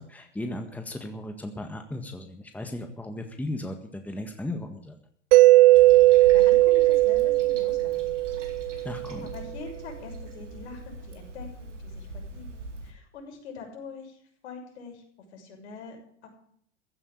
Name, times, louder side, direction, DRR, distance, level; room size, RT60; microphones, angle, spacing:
voice 1, 0.0-5.0 8.8-9.3, left 1 dB, 5° left, 5 dB, 1.6 m, -36 dB
Mallet percussion, 5.3-9.1, right 18 dB, 50° right, 0.5 m, -18 dB
Toilet flush, 5.7-12.9, right 1 dB, 80° right, 4.0 m, -41 dB
voice 2, 6.0-8.4 8.7-15.0 15.3-16.0 16.2-16.3, left 4 dB, 65° left, 2 dB, 6.5 m, -44 dB
15.5 x 9.5 x 8.6 m, 0.64 s
hypercardioid pair, 95°, 36 cm